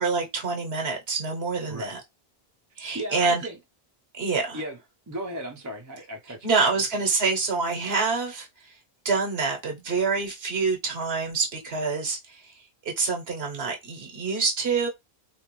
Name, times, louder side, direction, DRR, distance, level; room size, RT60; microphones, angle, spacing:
voice 1, 0.0-2.0 2.8-3.4 4.1-4.6 6.4-8.7 9.0-12.5 12.8-14.9, right 4 dB, 75° right, 1.1 m, -26 dB
voice 2, 1.7-2.0 2.9-3.6 4.5-4.8 5.1-6.6, right 1 dB, 25° right, 0.5 m, -35 dB
3.3 x 2.3 x 2.9 m
omnidirectional pair, 1.1 m